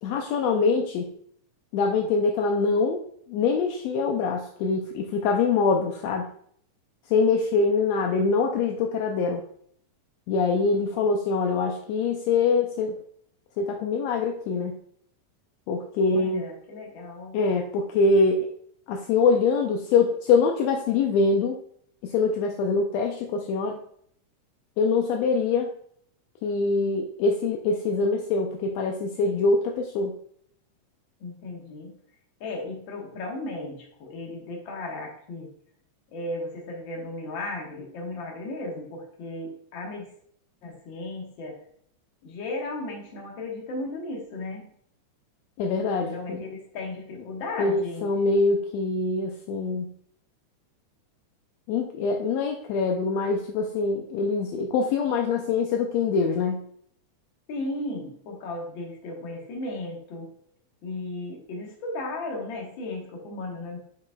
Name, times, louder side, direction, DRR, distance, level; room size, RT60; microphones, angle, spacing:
voice 1, 0.0-1.1 1.7-3.0 3.3-6.3 7.1-9.4 10.3-13.0 13.6-14.8 15.7-16.5 17.3-18.5 18.9-21.6 22.0-23.8 24.8-25.7 26.4-30.1 45.6-46.4 47.6-49.9 51.7-56.6, left 4 dB, 80° left, 3 dB, 1.5 m, -24 dB
voice 2, 16.0-17.4 31.2-31.9 32.4-35.5 36.1-40.1 40.6-41.6 42.2-44.7 46.0-48.0 57.5-60.3 60.8-63.8, left 2 dB, 50° left, -1 dB, 1.6 m, -35 dB
8.2 x 5.0 x 2.3 m, 0.64 s
omnidirectional pair, 3.6 m